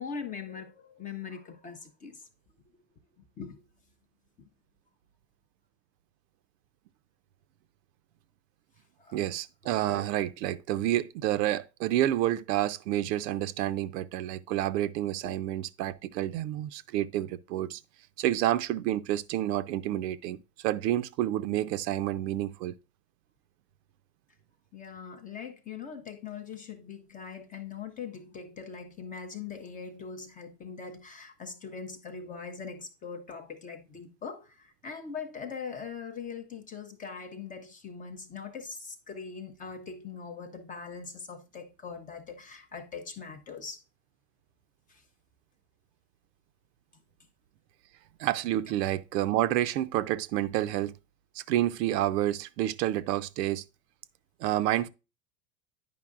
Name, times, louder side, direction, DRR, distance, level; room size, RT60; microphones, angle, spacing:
voice 1, 0.0-2.2 3.4-3.6 9.0-9.2 15.2-15.3 24.7-43.8 44.9-45.0, left 5 dB, 20° left, 0.4 m, -41 dB
voice 2, 9.1-17.8 18.2-22.7 48.2-50.9 51.3-53.6 54.4-54.9, right 13 dB, 85° right, 0.6 m, -29 dB
9.4 x 5.2 x 2.4 m
supercardioid pair, 125°, 48 cm